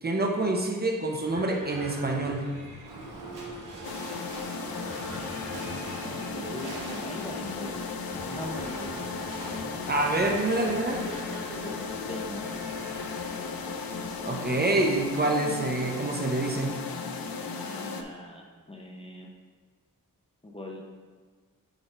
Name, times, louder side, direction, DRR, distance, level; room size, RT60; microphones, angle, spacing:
voice 1, 0.0-2.5 9.9-11.0 14.2-16.8, right 2 dB, 30° right, 1 dB, 0.6 m, -27 dB
Livestock farm animals working animals / Bell, 1.1-17.0, right 1 dB, 60° right, 1.5 m, -43 dB
sound 1, 3.8-18.0, left 4 dB, 85° left, 0.6 m, -36 dB
voice 2, 4.1-5.1 6.3-7.8 8.1-8.9 11.6-12.6 17.5-19.3 20.4-20.8, left 1 dB, 15° left, 0 dB, 0.6 m, -41 dB
9.0 x 4.3 x 3.3 m, 1.5 s
wide cardioid pair, 150°, 35 cm